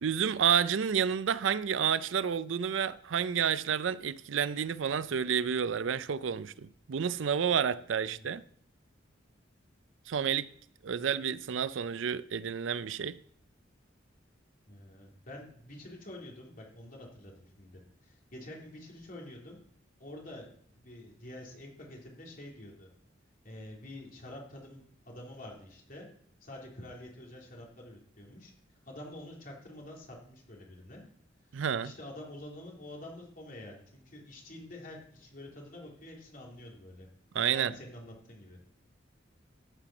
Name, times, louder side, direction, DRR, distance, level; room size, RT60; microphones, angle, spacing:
voice 1, 0.0-8.4 10.1-10.5 10.8-13.2 31.5-31.9 37.3-37.7, right 7 dB, 80° right, 0.5 m, -30 dB
voice 2, 14.7-19.6 20.0-22.9 23.4-26.1 26.4-28.5 28.8-31.0 31.8-37.1 37.5-38.6, left 1 dB, 45° left, 3.2 m, -47 dB
13.5 x 5.9 x 6.1 m
head